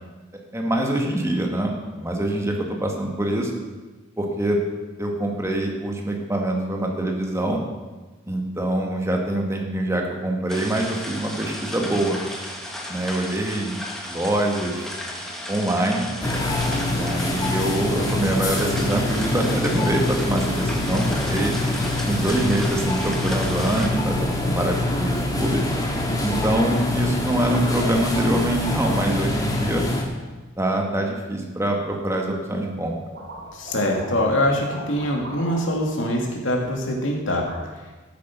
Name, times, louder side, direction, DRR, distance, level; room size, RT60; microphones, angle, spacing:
voice 1, 0.5-3.5 4.2-4.6 5.0-7.6 8.3-12.2 12.9-13.8 14.1-14.9 15.5-16.1 16.9-21.5 22.1-25.6 26.2-29.9 30.6-32.9, right 1 dB, 15° right, 1 dB, 1.9 m, -24 dB
sound 1, 10.5-23.9, left 1 dB, ahead, 1.8 m, -35 dB
sound 2, 16.2-30.0, left 1 dB, 20° left, 1.9 m, -25 dB
sound 3, 32.6-32.9 33.1-34.3 34.6-36.8 37.3-37.5, right 1 dB, 60° right, 4.6 m, -40 dB
voice 2, 33.5-37.4, left 1 dB, 75° left, 0 dB, 2.6 m, -23 dB
13.5 x 8.5 x 6.1 m, 1.2 s
head